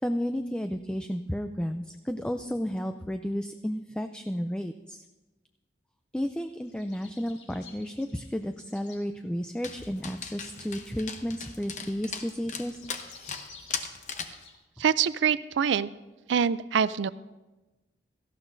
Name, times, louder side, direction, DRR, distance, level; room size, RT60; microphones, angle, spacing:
voice 1, 0.0-5.0 6.1-12.8, equal, 5° left, 7 dB, 0.3 m, -32 dB
sound 1, 6.6-9.0 9.8-14.5, left 5 dB, 75° left, 2.0 m, -53 dB
Dog, 9.6-14.4, left 6 dB, 40° left, 0.8 m, -39 dB
voice 2, 14.8-15.9 16.3-17.1, right 7 dB, 80° right, 17 dB, 0.4 m, -25 dB
17.5 x 14.5 x 2.6 m, 1.1 s
head